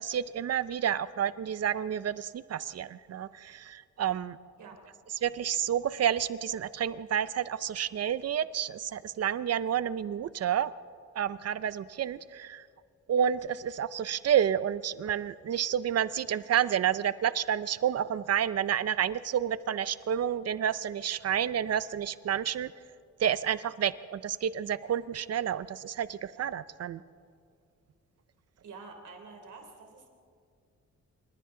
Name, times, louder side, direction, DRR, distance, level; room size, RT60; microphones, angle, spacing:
voice 1, 0.0-4.4 5.2-10.7 11.2-12.6 13.1-22.7 23.2-27.0, right 9 dB, 55° right, 16 dB, 0.5 m, -30 dB
voice 2, 28.6-30.1, right 4 dB, 85° right, 3 dB, 3.3 m, -47 dB
27.5 x 25.0 x 3.8 m, 2.3 s
wide cardioid pair, 175°, 29 cm